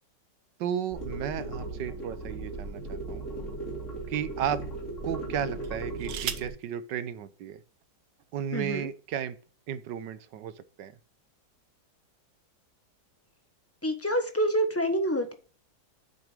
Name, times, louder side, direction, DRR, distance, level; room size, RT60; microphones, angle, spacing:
voice 1, 0.6-3.3 4.1-4.6 5.0-7.6 8.3-9.4 9.7-10.9, right 9 dB, 70° right, 13 dB, 1.3 m, -34 dB
sound 1, 0.9-6.5, right 2 dB, 40° left, 3.3 m, -37 dB
sound 2, 2.0-3.1 3.8-3.9 5.6-6.6 7.8-7.9 8.2-8.6, right 11 dB, 90° right, 1.6 m, -39 dB
voice 2, 8.5-8.9 13.8-15.3, equal, 10° left, 6 dB, 0.8 m, -27 dB
8.5 x 6.7 x 5.0 m, 0.40 s
omnidirectional pair, 2.1 m